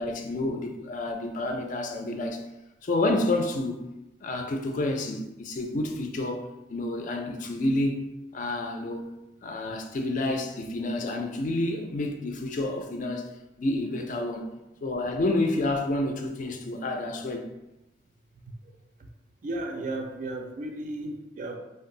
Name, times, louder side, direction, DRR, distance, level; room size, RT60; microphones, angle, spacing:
voice 1, 0.0-2.4 2.8-3.9 4.2-8.0 8.3-9.1 9.4-13.3 13.6-14.5 14.8-17.5, left 2 dB, 45° left, 0.4 m, -29 dB
voice 2, 19.4-21.6, right 2 dB, 45° right, 0.4 m, -34 dB
2.6 x 2.3 x 3.7 m
head